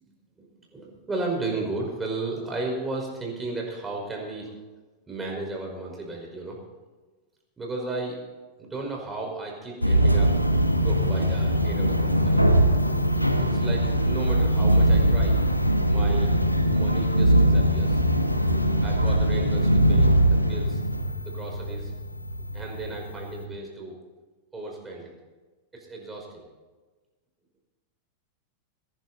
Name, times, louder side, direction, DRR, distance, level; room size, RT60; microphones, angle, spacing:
voice 1, 0.4-4.5 5.1-6.6 7.6-8.2 8.6-10.3 10.8-12.5 13.1-15.4 15.9-16.3 16.7-18.0 18.8-20.8 21.2-21.9 22.5-23.9 24.5-25.1 25.7-26.5, right 3 dB, 15° right, 0 dB, 5.1 m, -34 dB
sound 1, 9.8-23.5, right 1 dB, 90° left, 1.2 m, -22 dB
22.5 x 11.0 x 4.2 m, 1.3 s
figure-of-eight pair, 90°, 0 cm